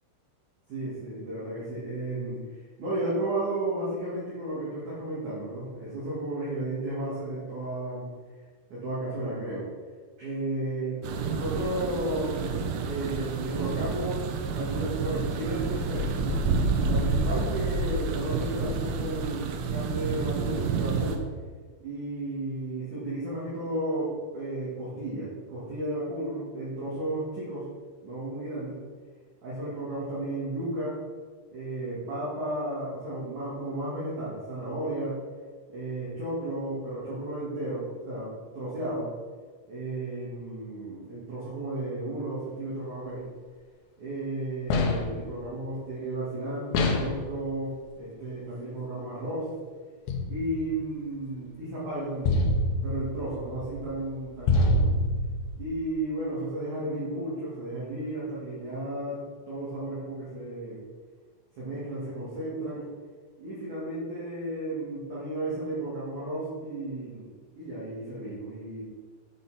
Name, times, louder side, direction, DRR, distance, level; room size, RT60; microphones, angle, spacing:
voice 1, 0.7-2.4 2.8-8.1 8.7-9.7 10.2-14.3 14.5-16.4 16.9-21.3 21.8-27.7 28.0-28.8 29.4-31.0 31.5-35.2 35.7-39.1 39.7-43.3 44.0-49.5 50.3-52.4 52.8-54.9 55.6-60.8 61.6-62.9 63.4-67.3 67.6-68.8, right 1 dB, 50° right, -9 dB, 2.5 m, -33 dB
sound 1, 11.0-21.2, right 4 dB, 90° right, 3.6 m, -29 dB
sound 2, 44.7-45.3 46.7-47.3 50.1-50.7 52.2-55.7, left 1 dB, 80° left, 2.4 m, -26 dB
8.6 x 6.8 x 4.2 m, 1.5 s
omnidirectional pair, 6.0 m